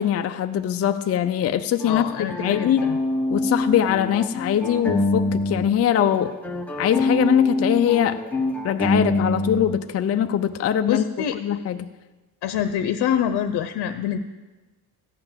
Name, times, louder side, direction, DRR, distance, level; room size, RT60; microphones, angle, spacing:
voice 1, 0.0-2.1 2.4-2.8 3.3-6.3 6.8-8.2 8.6-11.0 11.4-11.9, left 10 dB, 40° left, 8 dB, 0.4 m, -22 dB
voice 2, 1.8-3.0 10.9-11.4 12.4-14.3, left 9 dB, 90° left, 8 dB, 0.7 m, -25 dB
sound 1, 1.8-5.7 5.9-9.8, left 2 dB, 5° left, 1.1 m, -25 dB
14.5 x 5.9 x 8.9 m, 1.2 s
cardioid pair, 150°, 38 cm